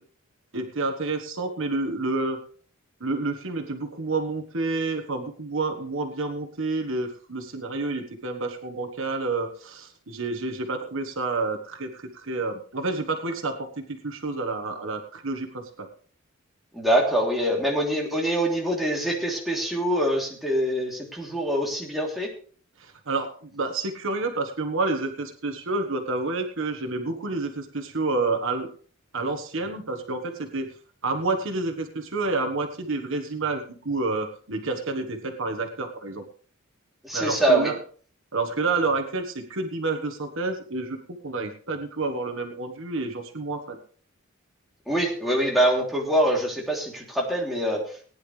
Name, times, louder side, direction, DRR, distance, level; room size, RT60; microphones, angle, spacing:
voice 1, 0.5-2.4 3.0-15.9 22.8-28.7 29.1-30.7 31.0-36.2 37.1-37.8 38.3-43.8, right 3 dB, 65° right, 5 dB, 1.4 m, -29 dB
voice 2, 16.7-22.3 37.0-37.7 44.9-47.8, right 1 dB, ahead, -2 dB, 3.2 m, -24 dB
19.0 x 10.0 x 3.3 m, 0.43 s
head